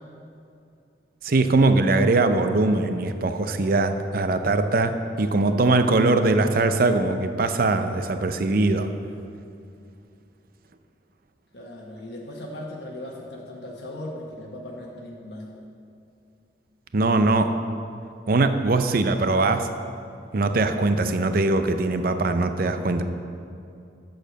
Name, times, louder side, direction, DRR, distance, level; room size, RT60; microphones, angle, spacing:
voice 1, 1.2-8.9 16.9-17.5 18.3-19.7 20.3-23.0, right 2 dB, 55° right, 8 dB, 0.6 m, -21 dB
voice 2, 11.5-15.5, left 1 dB, 65° left, -2 dB, 1.2 m, -38 dB
8.0 x 6.6 x 6.3 m, 2.5 s
head